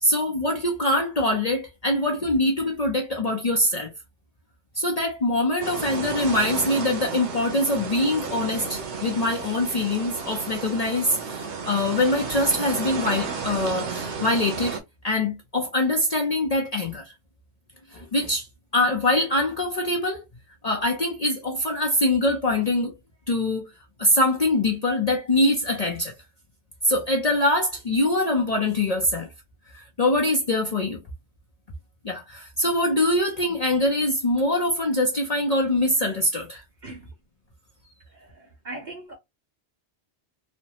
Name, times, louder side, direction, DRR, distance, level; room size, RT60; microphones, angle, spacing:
voice 1, 0.0-3.9 4.7-14.8 15.0-17.1 17.9-18.5 18.7-20.3 20.6-22.9 23.3-23.7 24.0-26.1 26.8-29.3 29.7-31.0 32.0-36.6, left 1 dB, 40° left, 0.6 m, -23 dB
sound 1, 5.6-14.8, right 5 dB, 85° right, 1.1 m, -33 dB
voice 2, 38.1-39.2, right 2 dB, 40° right, 1.5 m, -40 dB
3.3 x 2.1 x 2.7 m
omnidirectional pair, 1.1 m